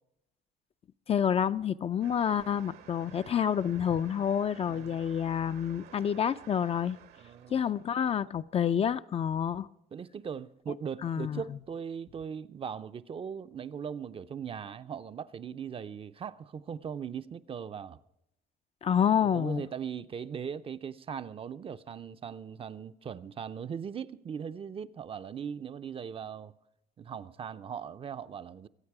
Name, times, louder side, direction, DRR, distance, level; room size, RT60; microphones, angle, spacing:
voice 1, 1.1-7.0 7.5-9.7 11.0-11.4 18.8-19.7, left 8 dB, 35° left, 0.4 m, -28 dB
sound 1, 2.0-8.0, right 10 dB, 70° right, 1.2 m, -53 dB
voice 2, 7.2-7.6 9.9-18.0 19.2-26.5 27.0-28.7, right 7 dB, 35° right, 0.5 m, -39 dB
23.0 x 8.9 x 4.8 m
cardioid pair, 110°, 17 cm